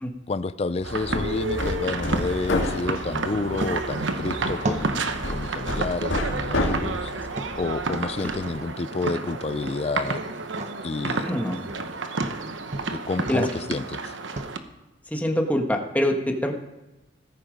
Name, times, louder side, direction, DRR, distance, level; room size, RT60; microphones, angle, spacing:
voice 1, 0.3-7.1 7.6-10.2 10.8-11.3 12.9-14.1, left 3 dB, 35° left, 14 dB, 0.4 m, -30 dB
Hammer, 0.8-8.6, left 1 dB, 85° left, 2.0 m, -31 dB
sound 1, 0.8-14.6, right 3 dB, 85° right, 1.1 m, -31 dB
sound 2, 3.6-14.5, right 1 dB, 40° right, 0.9 m, -38 dB
voice 2, 11.3-11.6 13.3-13.5 15.1-16.5, equal, 10° left, 3 dB, 1.4 m, -24 dB
16.0 x 14.0 x 5.2 m, 1.0 s
head